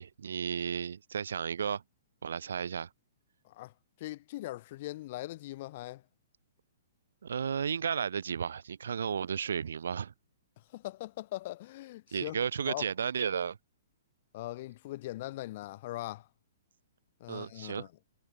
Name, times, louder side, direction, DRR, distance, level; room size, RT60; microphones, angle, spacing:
voice 1, 0.0-1.8 2.2-2.9 7.2-10.1 12.1-13.6 17.3-17.9, right 7 dB, 80° right, 0.4 m, -33 dB
voice 2, 4.0-6.0 10.7-12.4 12.7-12.8 14.3-16.3 17.2-17.9, left 16 dB, 35° left, 0.4 m, -40 dB
hypercardioid pair, 175°, 0 cm